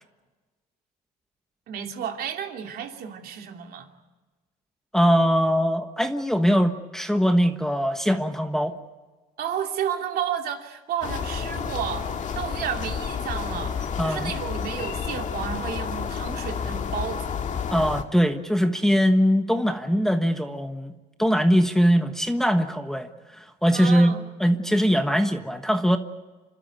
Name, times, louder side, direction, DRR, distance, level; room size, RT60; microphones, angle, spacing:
voice 1, 1.7-3.9 9.4-17.4 23.7-24.3, right 8 dB, 65° right, 3 dB, 2.8 m, -32 dB
voice 2, 4.9-8.8 14.0-14.3 17.7-20.9 21.2-23.1 23.4-26.0, equal, 5° left, 6 dB, 1.3 m, -21 dB
sound 1, 11.0-18.0, left 7 dB, 45° left, 2.0 m, -30 dB
28.5 x 12.5 x 9.2 m, 1.3 s
cardioid pair, 110°, 17 cm